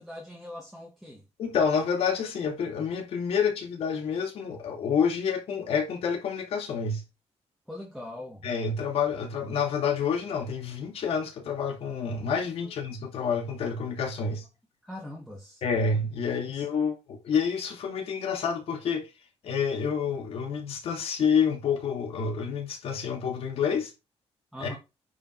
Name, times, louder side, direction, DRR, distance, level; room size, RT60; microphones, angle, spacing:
voice 1, 0.0-1.2 7.7-8.5 14.8-15.6 16.5-16.6 24.5-24.8, left 1 dB, ahead, 1.9 m, -41 dB
voice 2, 1.4-7.0 8.4-14.4 15.6-19.1 19.4-23.9 24.6-24.8, left 6 dB, 60° left, 2.5 m, -28 dB
9.8 x 5.1 x 4.6 m
cardioid pair, 160°, 11 cm